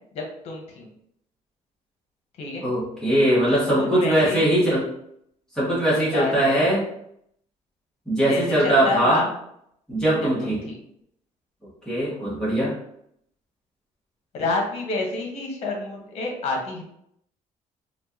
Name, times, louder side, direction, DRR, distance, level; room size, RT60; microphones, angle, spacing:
voice 1, 0.1-0.9 2.4-2.6 3.5-4.4 6.1-6.7 8.3-9.3 10.2-10.8 12.0-12.1 14.3-16.8, left 3 dB, 55° left, 0 dB, 1.1 m, -29 dB
voice 2, 2.6-4.9 5.5-6.8 8.1-9.2 9.9-10.6 11.8-12.7, right 1 dB, 5° left, -9 dB, 1.4 m, -21 dB
4.5 x 2.4 x 2.8 m, 0.71 s
cardioid pair, 175°, 13 cm